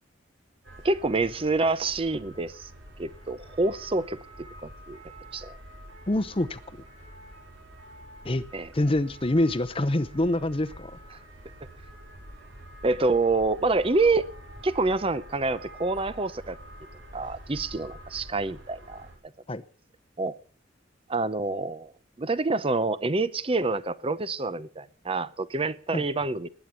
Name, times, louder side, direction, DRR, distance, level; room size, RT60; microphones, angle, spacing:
sound 1, 0.6-19.2, right 1 dB, 80° right, 5.1 m, -47 dB
voice 1, 0.8-2.7 3.0-4.2 4.6-5.0 5.3-5.5 8.5-8.7 12.8-14.3 14.6-16.6 17.1-19.1 20.2-20.4 21.1-21.9 22.2-26.5, right 3 dB, 30° right, 0.7 m, -27 dB
voice 2, 6.1-6.6 8.2-8.4 8.7-10.9 19.5-19.6 25.9-26.0, left 1 dB, 30° left, 0.8 m, -25 dB
20.0 x 9.2 x 6.9 m
head